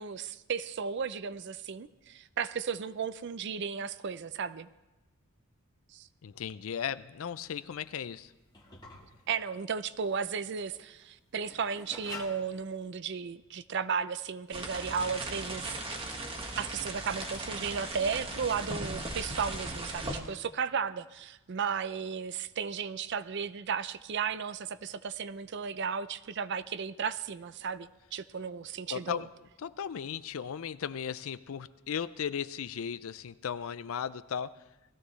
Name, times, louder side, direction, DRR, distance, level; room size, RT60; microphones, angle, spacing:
voice 1, 0.0-4.7 5.9-6.1 9.3-16.1 16.6-29.2, right 6 dB, 55° right, 15 dB, 0.5 m, -34 dB
voice 2, 6.2-8.3 28.9-29.3 29.6-34.6, left 8 dB, 75° left, 16 dB, 0.5 m, -36 dB
sound 1, 7.4-12.8, left 3 dB, 20° left, 1.6 m, -49 dB
sound 2, 14.5-20.2, right 2 dB, 25° right, 1.4 m, -38 dB
19.0 x 14.5 x 3.2 m, 1.1 s
head